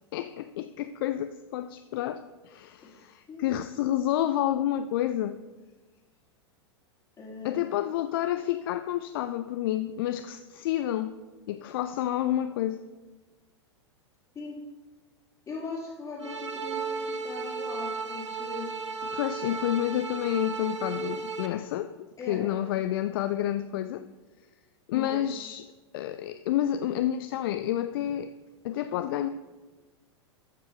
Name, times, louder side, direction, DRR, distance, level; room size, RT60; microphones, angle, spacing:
voice 1, 0.1-5.4 7.4-11.1 11.5-12.8 19.1-24.1 24.9-28.3 28.6-29.3, left 12 dB, 50° left, 11 dB, 0.4 m, -29 dB
voice 2, 7.2-7.6 14.3-14.6 15.5-18.7 19.5-19.7 22.2-22.8 24.9-25.2 29.0-29.3, left 3 dB, 25° left, -7 dB, 2.4 m, -40 dB
sound 1, 16.2-21.5, right 4 dB, 80° right, 0.9 m, -34 dB
14.0 x 5.4 x 4.6 m, 1.3 s
figure-of-eight pair, 95°, 15 cm